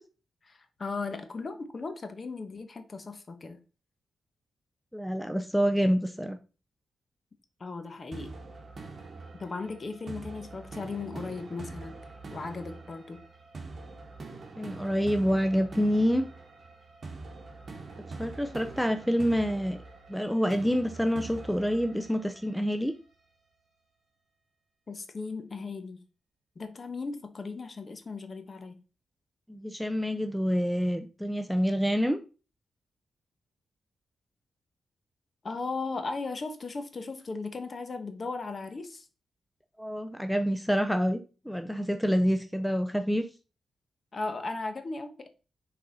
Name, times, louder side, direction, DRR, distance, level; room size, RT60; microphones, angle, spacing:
voice 1, 0.4-3.6 7.6-8.4 9.4-12.0 12.3-13.2 24.9-26.0 26.6-28.8 35.4-39.1 44.1-45.3, left 3 dB, 40° left, 1.1 m, -37 dB
voice 2, 4.9-6.4 14.6-16.3 18.2-19.8 20.1-22.9 29.5-32.2 39.8-41.2 41.5-43.3, equal, ahead, 0.5 m, -27 dB
sound 1, 8.1-23.1, right 3 dB, 45° right, 1.6 m, -44 dB
6.6 x 4.0 x 4.1 m
cardioid pair, 105°, 0 cm